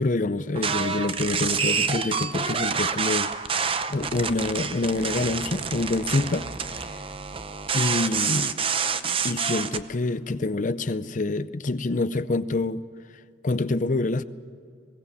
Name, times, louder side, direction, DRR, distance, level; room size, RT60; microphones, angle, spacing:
voice 1, 0.0-3.3 3.9-6.5 6.7-6.9 7.7-8.5 9.0-12.8 13.4-14.2, left 2 dB, 40° left, 14 dB, 0.6 m, -26 dB
sound 1, 0.5-9.8, right 6 dB, 30° right, 0.7 m, -28 dB
21.5 x 17.5 x 7.0 m, 2.3 s
head